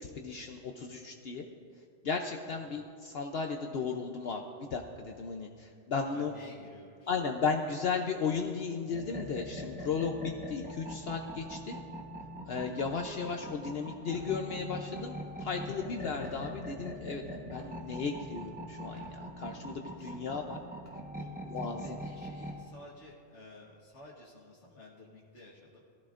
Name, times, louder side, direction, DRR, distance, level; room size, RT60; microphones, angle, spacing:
voice 1, 0.0-1.5 2.0-6.3 7.1-11.8 12.5-20.6 21.5-22.0, left 5 dB, 60° left, 3 dB, 0.9 m, -35 dB
voice 2, 6.1-7.1 20.0-20.2 21.1-25.8, left 1 dB, 80° left, -4 dB, 1.7 m, -52 dB
sound 1, 8.9-22.6, equal, 10° right, 1.0 m, -43 dB
sound 2, 11.4-11.9 12.3-13.3 13.9-15.7 16.1-17.3 17.6-18.1 18.7-19.8 20.3-20.4 20.6-21.5, right 1 dB, 55° right, 3.1 m, -56 dB
19.5 x 14.0 x 2.5 m, 2.3 s
omnidirectional pair, 1.2 m